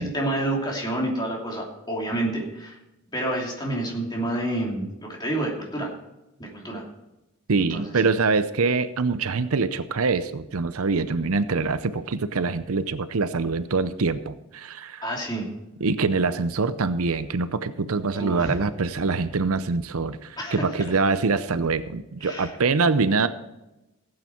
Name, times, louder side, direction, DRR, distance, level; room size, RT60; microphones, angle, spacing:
voice 1, 0.0-2.8 3.1-5.9 6.4-6.9 7.7-8.1 15.0-15.5 18.1-18.5 20.4-20.7 22.2-22.5, right 1 dB, 20° left, -1 dB, 2.9 m, -29 dB
voice 2, 7.5-15.0 15.8-23.3, right 4 dB, 75° right, 13 dB, 0.7 m, -24 dB
16.0 x 8.8 x 4.5 m, 0.96 s
head